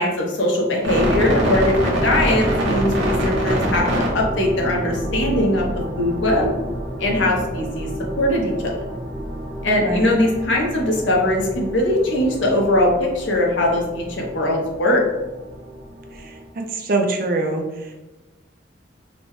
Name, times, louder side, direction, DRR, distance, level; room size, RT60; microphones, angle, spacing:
voice 1, 0.0-3.9 4.1-5.7 6.0-6.5 7.0-7.9 8.2-8.7 9.6-15.0, left 1 dB, 70° left, -1 dB, 0.8 m, -20 dB
sound 1, 0.8-16.4, equal, 80° right, 0.9 m, -26 dB
voice 2, 9.8-10.2 16.1-17.9, right 2 dB, 50° right, 3 dB, 0.5 m, -24 dB
4.0 x 2.1 x 3.0 m, 1.1 s
head